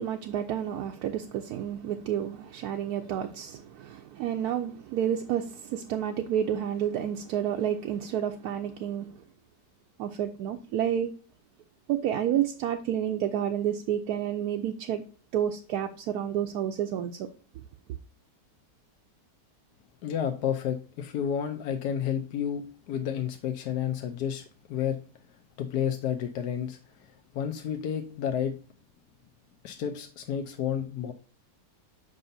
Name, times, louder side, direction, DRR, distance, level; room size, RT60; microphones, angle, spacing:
voice 1, 0.0-9.1 10.0-11.1 11.9-15.0 15.3-17.3, right 10 dB, 70° right, 1.0 m, -30 dB
voice 2, 20.0-25.0 25.6-28.5 29.6-31.1, left 9 dB, 70° left, 1.1 m, -31 dB
7.7 x 5.5 x 2.6 m
omnidirectional pair, 1.9 m